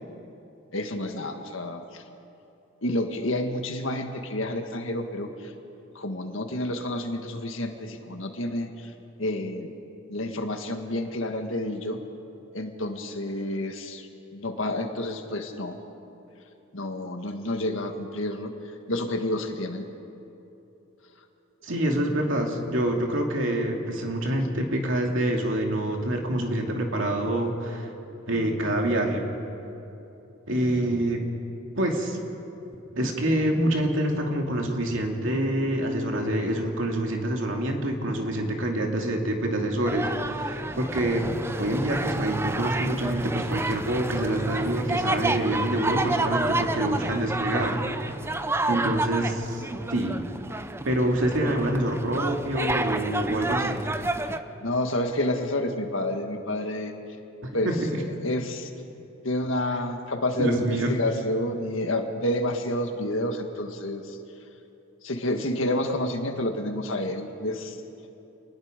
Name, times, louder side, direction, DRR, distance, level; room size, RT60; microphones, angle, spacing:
voice 1, 0.7-2.0 2.8-5.5 5.9-8.9 9.2-9.7 10.1-12.0 12.5-15.8 16.7-18.5 18.9-19.9 54.6-56.9 57.5-57.7 58.2-58.7 59.2-64.2 65.0-67.8, left 1 dB, 70° left, 5 dB, 1.8 m, -29 dB
voice 2, 21.6-27.9 28.3-29.3 30.5-31.2 31.8-32.2 32.9-41.3 41.6-47.8 48.7-49.6 49.9-50.2 50.8-53.9 57.4-57.9 60.4-60.9, right 1 dB, 70° right, 1 dB, 2.6 m, -26 dB
sound 1, 39.9-54.4, right 2 dB, 10° right, 0.6 m, -30 dB
28.5 x 20.0 x 5.2 m, 2.9 s
head